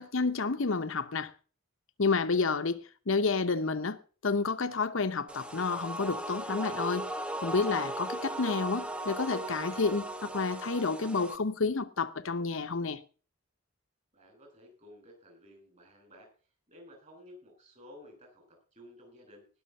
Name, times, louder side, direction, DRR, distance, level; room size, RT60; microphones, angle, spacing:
voice 1, 0.0-1.3 2.0-7.1 7.4-13.0, left 4 dB, 65° left, 0.8 m, -30 dB
sound 1, 5.3-11.4, right 1 dB, 5° right, 0.8 m, -37 dB
voice 2, 14.1-16.3 16.7-19.5, left 1 dB, 30° right, 6.1 m, -54 dB
19.0 x 6.4 x 5.3 m
head